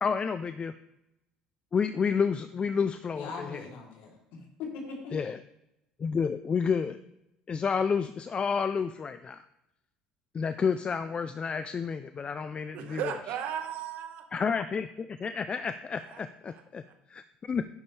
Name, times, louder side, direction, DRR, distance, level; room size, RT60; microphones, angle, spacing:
voice 1, 0.0-0.7 1.7-3.7 5.1-5.4 6.0-7.0 7.5-9.4 10.3-13.0 14.3-16.8 17.1-17.7, left 6 dB, 35° left, 11 dB, 0.5 m, -30 dB
voice 2, 3.1-5.2, left 4 dB, 75° left, -1 dB, 3.4 m, -40 dB
voice 3, 12.7-14.3 16.0-16.2 16.5-16.9, right 10 dB, 70° right, 5 dB, 1.6 m, -36 dB
11.0 x 9.8 x 3.4 m, 0.87 s
supercardioid pair, 75°, 3 cm